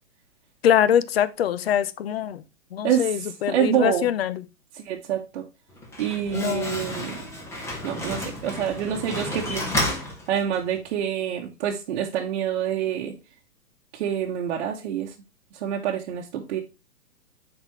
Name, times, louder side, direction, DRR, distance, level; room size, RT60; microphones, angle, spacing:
voice 1, 0.6-2.4 2.7-4.4 6.3-7.0, left 10 dB, 40° left, 0.5 m, -23 dB
voice 2, 3.5-4.1 4.7-5.4 6.0-7.2 7.8-9.8 10.3-13.1 13.9-15.1 15.6-16.6, right 9 dB, 40° right, 1.1 m, -27 dB
Slam, 5.7-10.8, left 1 dB, 5° left, 0.8 m, -31 dB
9.3 x 4.2 x 3.0 m
hypercardioid pair, 145°, 47 cm